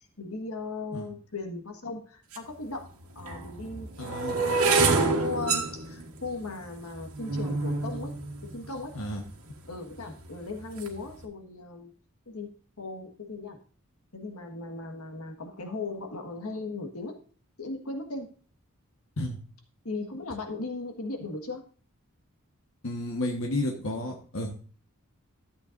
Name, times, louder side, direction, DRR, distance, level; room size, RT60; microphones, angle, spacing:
voice 1, 0.2-2.9 3.1-8.1 8.5-8.9 9.7-11.9 12.3-12.5 12.8-13.6 14.1-17.1 17.6-18.3 19.8-21.6, left 3 dB, 80° left, 3 dB, 1.6 m, -37 dB
sound 1, 2.3-2.4 3.2-9.3 10.0-10.4 10.6-11.0, right 3 dB, 80° right, 1.6 m, -28 dB
voice 2, 4.0-4.4 8.9-9.2 19.2-19.4 22.8-24.5, left 1 dB, 65° left, 1 dB, 1.4 m, -32 dB
12.5 x 8.1 x 2.6 m, 0.41 s
head